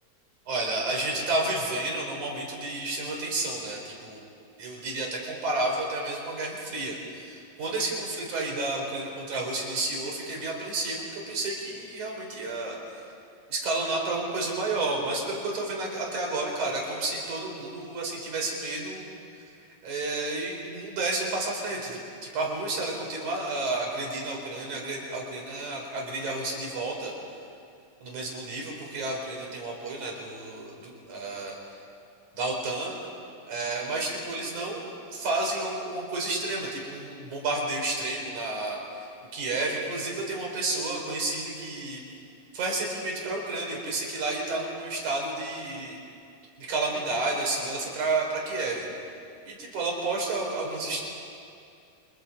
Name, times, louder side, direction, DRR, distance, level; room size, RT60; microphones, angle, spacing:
voice 1, 0.5-4.2 4.6-12.8 13.5-19.2 19.5-19.6 19.8-22.0 22.3-27.1 28.0-31.6 32.3-33.0 33.5-39.1 39.3-42.0 42.5-46.0 46.6-48.9 49.5-51.0, right 2 dB, 85° right, 0 dB, 5.6 m, -31 dB
30.0 x 26.5 x 5.3 m, 2.5 s
omnidirectional pair, 3.3 m